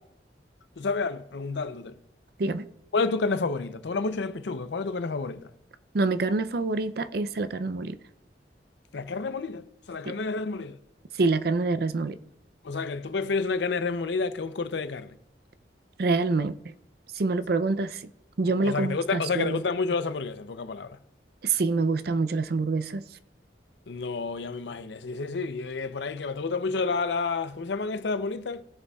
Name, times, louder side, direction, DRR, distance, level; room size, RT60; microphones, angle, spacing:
voice 1, 0.8-2.0 2.9-5.5 8.9-10.8 12.6-15.1 18.5-21.0 23.9-28.6, left 4 dB, 75° left, 0.6 m, -30 dB
voice 2, 5.9-8.0 10.1-10.2 11.1-12.2 16.0-16.6 17.1-18.1 18.4-19.6 21.4-23.0, right 3 dB, 55° right, 0.5 m, -26 dB
18.5 x 6.7 x 2.3 m
head